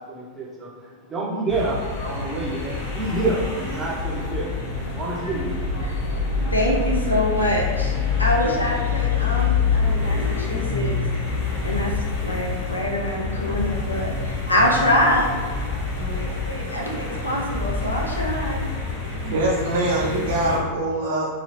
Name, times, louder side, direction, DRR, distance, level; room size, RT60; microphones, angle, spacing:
voice 1, 0.0-5.8, right 2 dB, 20° right, -3 dB, 0.8 m, -28 dB
sound 1, 1.5-20.6, left 4 dB, 55° left, 1.1 m, -27 dB
sound 2, 3.6-5.1 5.6-7.2 7.5-9.1 9.5-11.2 11.5-13.2 13.5-15.1 15.5-17.2 17.5-19.1, left 2 dB, 5° left, 0.9 m, -35 dB
voice 2, 6.5-11.0 11.6-15.4 16.2-18.7, left 1 dB, 85° left, -3 dB, 0.6 m, -25 dB
voice 3, 19.2-21.3, right 1 dB, 55° right, -4 dB, 0.9 m, -23 dB
2.8 x 2.8 x 3.2 m, 1.4 s
figure-of-eight pair, 90°, 0 cm